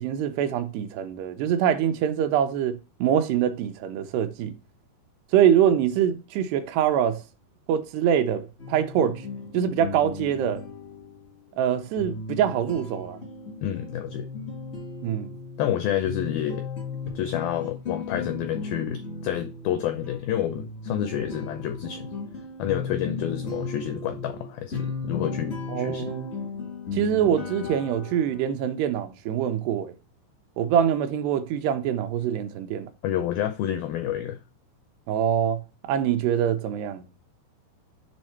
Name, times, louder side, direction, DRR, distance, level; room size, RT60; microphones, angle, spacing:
voice 1, 0.0-4.5 5.3-7.2 7.7-9.3 9.5-10.7 11.6-13.2 15.0-15.4 25.7-26.3 26.9-29.9 30.6-32.9 35.1-37.0, right 9 dB, 80° right, 2.6 m, -24 dB
sound 1, 8.6-28.4, left 4 dB, 55° left, 0.7 m, -36 dB
voice 2, 13.6-14.3 15.6-16.7 17.2-22.1 22.6-26.1 33.0-34.4, left 11 dB, 90° left, 2.0 m, -29 dB
7.5 x 3.5 x 4.3 m
omnidirectional pair, 5.0 m